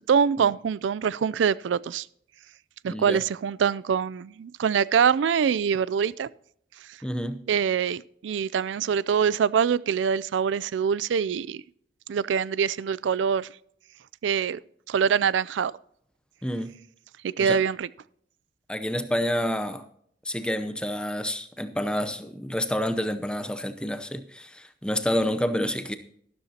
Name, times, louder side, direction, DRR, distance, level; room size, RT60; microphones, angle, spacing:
voice 1, 0.1-2.1 2.8-6.3 7.5-11.6 12.1-13.5 14.2-14.6 14.9-15.7 17.2-17.9, right 7 dB, 90° right, 0.4 m, -24 dB
voice 2, 2.9-3.2 7.0-7.4 16.4-16.7 17.4-17.6 18.7-19.8 20.2-26.0, equal, 5° left, 0.7 m, -28 dB
12.5 x 12.5 x 2.8 m
head